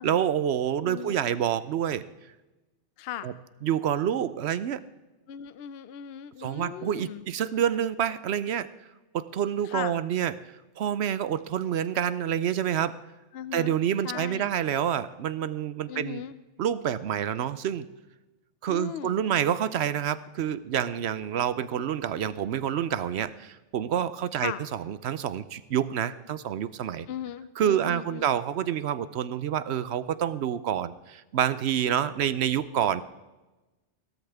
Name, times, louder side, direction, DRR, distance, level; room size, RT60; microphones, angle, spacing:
voice 1, 0.0-2.1 3.2-3.3 3.6-4.9 6.4-8.7 9.1-13.0 13.5-16.2 16.6-17.9 18.6-27.1 27.6-33.0, right 9 dB, 70° right, 15 dB, 0.8 m, -28 dB
voice 2, 0.8-1.3 3.0-3.3 5.3-7.2 9.6-9.9 13.3-13.7 14.0-14.5 15.9-16.4 18.7-19.2 24.3-24.6 27.1-28.2, left 10 dB, 65° left, 14 dB, 0.8 m, -37 dB
16.5 x 13.0 x 3.5 m, 1.1 s
omnidirectional pair, 1.2 m